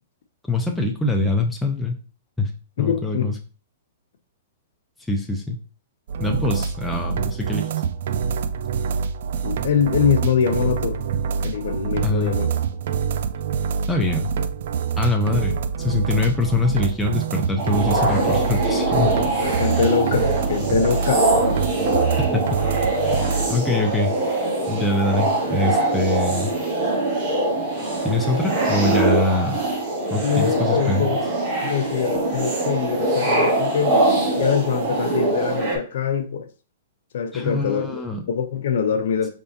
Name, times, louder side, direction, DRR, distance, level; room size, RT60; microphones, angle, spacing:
voice 1, 0.5-2.0 2.4-2.5 2.8-3.3 5.1-5.6 6.2-7.7 12.0-12.3 13.9-14.3 15.0-19.1 22.3-22.4 23.5-24.1 24.7-26.5 28.0-29.6 30.1-31.1 37.3-38.2, left 2 dB, 5° left, 0.6 m, -23 dB
voice 2, 2.8-3.3 9.4-11.0 11.4-12.6 19.2-21.3 30.2-31.2 31.6-34.0 34.4-36.5 37.1-38.0 38.3-39.3, left 7 dB, 65° left, 0.7 m, -23 dB
sound 1, 6.1-23.5, right 7 dB, 60° right, 0.4 m, -26 dB
sound 2, 17.6-35.8, right 2 dB, 30° right, 1.5 m, -23 dB
5.0 x 3.6 x 2.8 m
hypercardioid pair, 160°, 0 cm